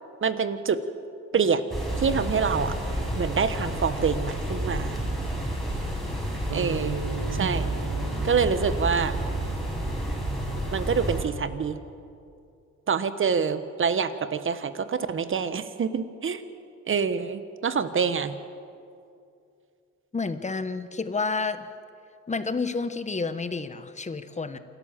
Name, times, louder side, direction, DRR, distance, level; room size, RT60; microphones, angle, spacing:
voice 1, 0.2-0.8 1.3-1.6 2.0-2.8 3.1-5.0 6.5-7.0 7.3-7.7 8.2-9.1 10.7-11.8 12.9-16.4 16.9-18.3, right 6 dB, 40° right, 12 dB, 1.3 m, -26 dB
sound 1, 1.7-11.2, right 1 dB, ahead, 5.8 m, -30 dB
sound 2, 6.5-10.8, right 5 dB, 65° right, 1.8 m, -38 dB
voice 2, 20.1-21.7 22.3-24.6, left 4 dB, 25° left, 11 dB, 1.2 m, -30 dB
27.5 x 12.5 x 7.5 m, 2.5 s
cardioid pair, 90°, 30 cm